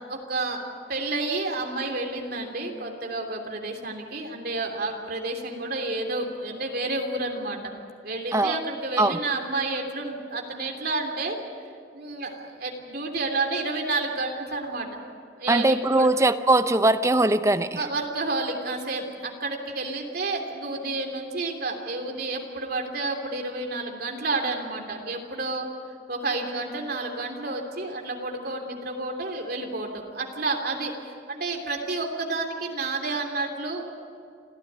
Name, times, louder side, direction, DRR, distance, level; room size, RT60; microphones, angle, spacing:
voice 1, 0.1-0.6 0.9-7.7 8.0-11.4 11.9-14.9 15.4-16.1 17.8-25.7 26.1-30.9 31.3-33.8, right 3 dB, 55° right, 2 dB, 3.2 m, -30 dB
voice 2, 15.5-17.9, right 2 dB, 15° right, 11 dB, 0.7 m, -21 dB
27.0 x 14.5 x 9.5 m, 2.2 s
head